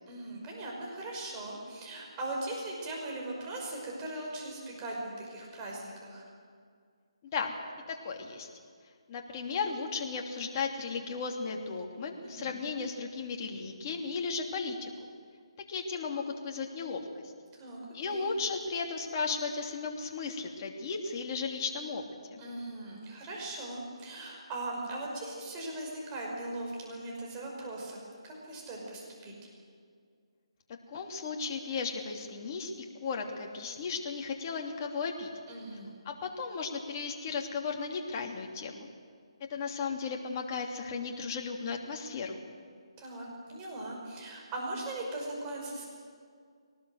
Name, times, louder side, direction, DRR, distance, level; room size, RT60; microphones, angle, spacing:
voice 1, 0.1-6.2 12.2-12.5 17.5-17.8 18.1-18.3 22.4-29.3 35.5-36.0 43.0-45.8, right 2 dB, 20° right, -2 dB, 5.7 m, -39 dB
voice 2, 7.9-8.5 9.1-14.9 15.7-17.0 17.9-22.0 22.3-22.4 30.9-32.7 33.0-35.3 36.0-38.9 39.5-42.4, left 5 dB, 30° left, 1 dB, 2.9 m, -35 dB
22.5 x 18.5 x 7.9 m, 2.1 s
figure-of-eight pair, 150°, 3 cm